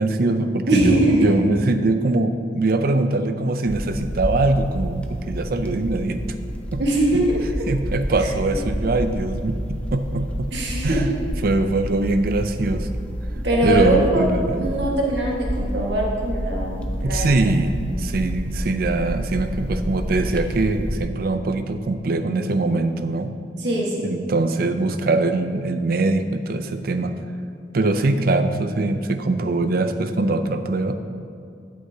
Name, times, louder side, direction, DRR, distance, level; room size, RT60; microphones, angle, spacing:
voice 1, 0.0-6.2 6.7-6.8 7.7-10.5 10.8-11.1 11.4-12.9 13.6-14.7 17.0-23.3 24.0-27.2 27.7-30.9, right 2 dB, 55° right, 9 dB, 0.5 m, -22 dB
voice 2, 0.7-1.3 6.8-7.4 8.2-8.3 10.5-11.1 13.4-14.3 14.6-17.5 23.6-24.1, right 1 dB, 75° right, -2 dB, 1.6 m, -21 dB
sound 1, 3.7-21.0, equal, 5° left, 0.6 m, -29 dB
11.0 x 8.7 x 2.8 m, 2.4 s
head